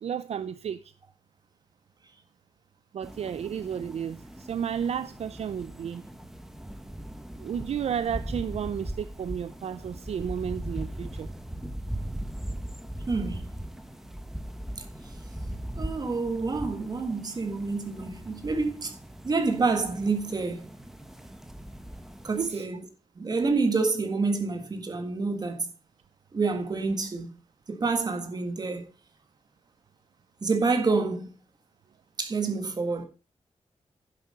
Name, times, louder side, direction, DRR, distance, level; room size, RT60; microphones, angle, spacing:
voice 1, 0.0-0.9 2.9-6.1 7.4-11.3 15.5-15.6 22.4-22.7, right 8 dB, 65° right, 0.4 m, -32 dB
sound 1, 3.0-22.5, right 1 dB, 5° right, 0.9 m, -39 dB
voice 2, 13.1-13.5 15.8-18.9 19.2-20.7 22.2-22.9 23.2-25.7 26.3-27.4 27.7-28.9 30.4-31.3 32.2-33.0, right 4 dB, 35° right, 1.7 m, -28 dB
10.5 x 7.5 x 5.6 m
wide cardioid pair, 180°, 12 cm